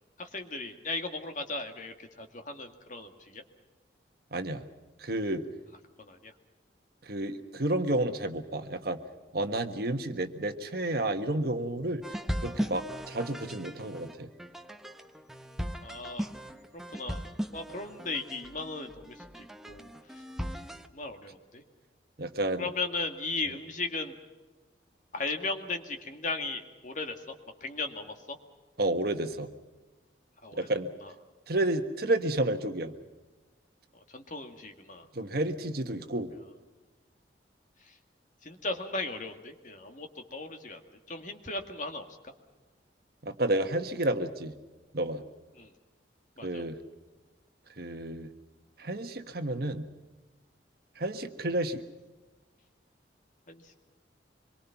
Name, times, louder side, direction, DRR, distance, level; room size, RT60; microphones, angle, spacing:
voice 1, 0.2-3.4 6.1-6.3 15.8-16.3 16.9-17.2 17.5-19.9 20.9-21.6 22.6-24.1 25.1-27.3 27.6-28.4 30.4-30.6 31.0-31.1 34.1-35.0 38.4-40.8 41.1-42.0 45.5-45.7 46.4-46.6 53.5-53.6, left 3 dB, 45° left, 5 dB, 2.1 m, -36 dB
voice 2, 4.3-4.6 5.0-5.4 7.0-9.0 9.3-12.0 12.4-14.3 22.2-22.7 28.8-29.5 30.6-30.9 31.5-32.9 35.1-36.3 43.2-44.5 44.9-45.2 46.4-46.8 47.8-48.3 48.8-49.9 51.0-51.8, right 1 dB, 55° right, 7 dB, 1.4 m, -30 dB
sound 1, 12.0-20.9, equal, ahead, 0.8 m, -38 dB
25.5 x 23.0 x 5.9 m, 1.2 s
head